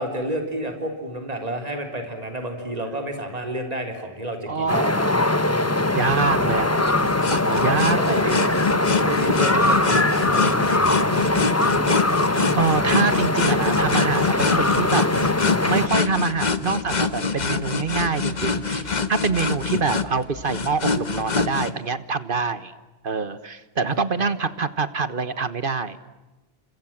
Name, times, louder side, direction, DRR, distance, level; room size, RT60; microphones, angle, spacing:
voice 1, 0.0-4.8 6.4-6.7 7.5-8.3 9.0-11.2 19.7-19.9 23.8-24.0, right 1 dB, 35° right, 4 dB, 3.8 m, -30 dB
voice 2, 4.5-5.0 5.5-6.8 7.3-8.2 12.5-15.0 15.7-22.7 23.0-26.0, right 5 dB, 55° right, 13 dB, 1.5 m, -25 dB
sound 1, 4.7-15.9, left 2 dB, 15° left, 1.0 m, -21 dB
sound 2, 6.0-21.7, left 4 dB, 45° left, 1.4 m, -25 dB
30.0 x 27.0 x 7.4 m, 1.1 s
omnidirectional pair, 1.1 m